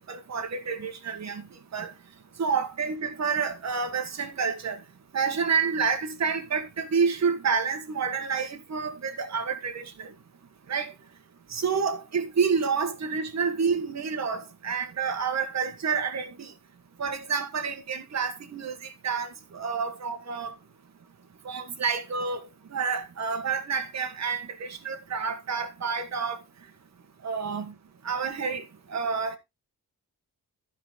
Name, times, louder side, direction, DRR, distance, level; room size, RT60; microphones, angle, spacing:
voice 1, 0.1-1.4 1.7-1.9 2.4-4.8 5.1-10.1 10.7-10.9 11.5-16.5 17.0-20.5 21.4-26.4 27.2-27.7 28.0-28.6 28.9-29.4, right 5 dB, 50° right, 1.5 m, -29 dB
14.0 x 5.0 x 3.7 m
wide cardioid pair, 115°, 36 cm